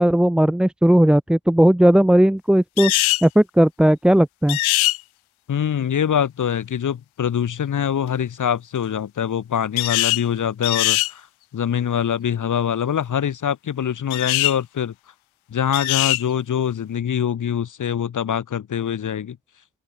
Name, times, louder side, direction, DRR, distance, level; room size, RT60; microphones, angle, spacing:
voice 1, 0.0-2.9 3.2-4.6, right 1 dB, ahead, 0.4 m, -16 dB
sound 1, 2.8-3.3 4.5-5.0 9.8-10.2 10.6-11.1 14.1-14.6 15.7-16.2, left 19 dB, 90° left, 0.8 m, -21 dB
voice 2, 5.5-11.3 11.5-14.9 15.5-19.4, left 8 dB, 40° left, 2.2 m, -24 dB
open air
cardioid pair, 165°, 47 cm